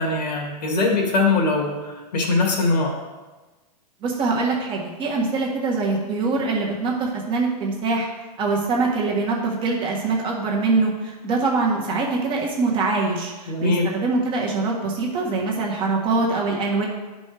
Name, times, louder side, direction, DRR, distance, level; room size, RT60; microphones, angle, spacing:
voice 1, 0.0-3.0 13.5-13.9, left 3 dB, 85° left, 0 dB, 2.4 m, -22 dB
voice 2, 4.0-8.1 8.4-16.9, right 3 dB, 25° right, -2 dB, 1.5 m, -23 dB
10.5 x 5.2 x 3.4 m, 1.2 s
hypercardioid pair, 150°, 21 cm